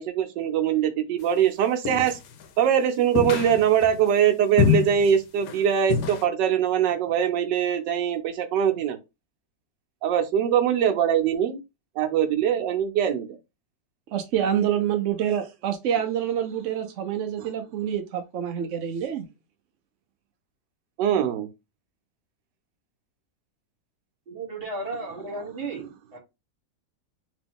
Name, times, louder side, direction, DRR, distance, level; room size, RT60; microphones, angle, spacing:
voice 1, 0.0-2.2 2.6-9.0 10.0-11.6 12.0-13.3 17.4-17.5 21.0-21.5, right 9 dB, 85° right, 1.3 m, -22 dB
sound 1, 1.9-2.4 3.2-4.0 4.6-5.1 5.4-5.6 5.9-6.2, left 8 dB, 80° left, 1.3 m, -25 dB
voice 2, 14.1-19.2, right 9 dB, 65° right, 0.7 m, -27 dB
voice 3, 24.3-26.2, right 3 dB, 35° right, 1.5 m, -34 dB
3.1 x 3.0 x 3.4 m
omnidirectional pair, 1.9 m